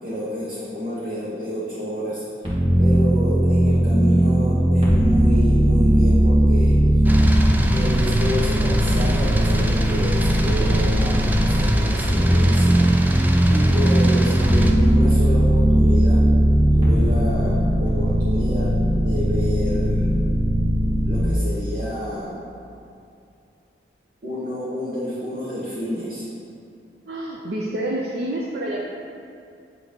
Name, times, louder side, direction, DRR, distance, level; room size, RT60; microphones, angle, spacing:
voice 1, 0.0-2.2 2.8-7.0 7.7-12.8 13.5-16.2 16.7-20.2 21.0-22.5 24.2-26.3, equal, 50° right, -9 dB, 1.2 m, -29 dB
sound 1, 2.4-11.6 12.0-21.2, right 1 dB, 30° right, 1.2 m, -18 dB
sound 2, 7.1-14.7, right 1 dB, 10° right, 0.3 m, -25 dB
voice 2, 27.1-28.8, right 1 dB, 70° right, -3 dB, 0.6 m, -28 dB
8.7 x 2.9 x 5.2 m, 2.6 s
head